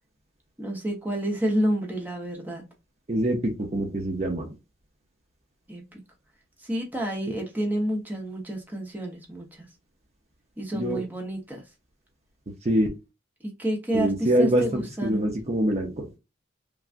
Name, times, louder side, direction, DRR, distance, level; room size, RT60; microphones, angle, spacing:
voice 1, 0.6-2.6 5.7-6.0 6.6-9.7 10.6-11.6 13.4-14.1 14.4-15.3, right 1 dB, 10° right, 0.9 m, -29 dB
voice 2, 3.1-4.5 7.3-7.4 10.7-11.0 12.6-12.9 13.9-16.1, right 1 dB, 35° right, 0.6 m, -25 dB
3.3 x 2.3 x 2.5 m
head